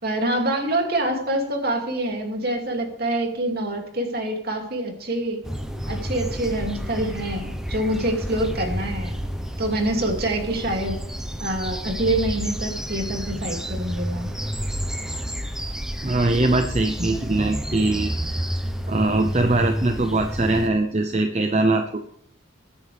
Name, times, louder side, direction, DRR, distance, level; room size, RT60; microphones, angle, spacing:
voice 1, 0.0-5.4 5.9-9.2 9.6-11.0 11.4-14.3, right 1 dB, 50° right, 2 dB, 2.6 m, -26 dB
sound 1, 5.4-20.7, equal, 5° right, 1.0 m, -30 dB
voice 2, 16.0-18.1 18.9-22.0, right 2 dB, 35° right, 6 dB, 0.7 m, -21 dB
21.5 x 9.8 x 3.4 m, 0.73 s
head